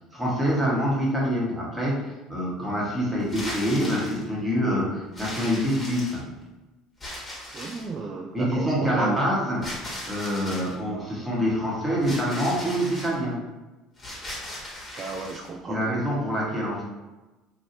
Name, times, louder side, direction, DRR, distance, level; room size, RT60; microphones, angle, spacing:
voice 1, 0.1-6.2 8.3-9.7 10.0-13.4 15.7-16.8, equal, 10° right, -5 dB, 1.3 m, -26 dB
sound 1, 3.2-4.2 5.1-6.4 7.0-8.0 9.6-10.8 12.0-13.1 14.0-15.5, left 1 dB, 20° left, 1.3 m, -37 dB
voice 2, 7.5-9.2 15.0-16.0, right 4 dB, 35° right, 1 dB, 0.3 m, -33 dB
2.8 x 2.7 x 2.8 m, 1.1 s
hypercardioid pair, 65°, 0 cm